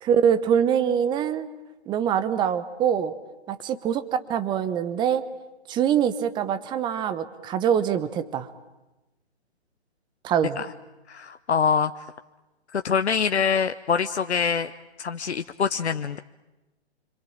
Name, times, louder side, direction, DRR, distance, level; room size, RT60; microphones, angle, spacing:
voice 1, 0.0-1.5 1.9-3.1 3.5-5.2 5.7-8.5 10.2-10.6, right 8 dB, 15° right, 13 dB, 1.1 m, -24 dB
voice 2, 11.1-11.9 12.7-14.7 15.0-16.2, left 6 dB, 80° left, 9 dB, 1.0 m, -24 dB
27.0 x 25.0 x 8.7 m, 1.1 s
figure-of-eight pair, 140°, 33 cm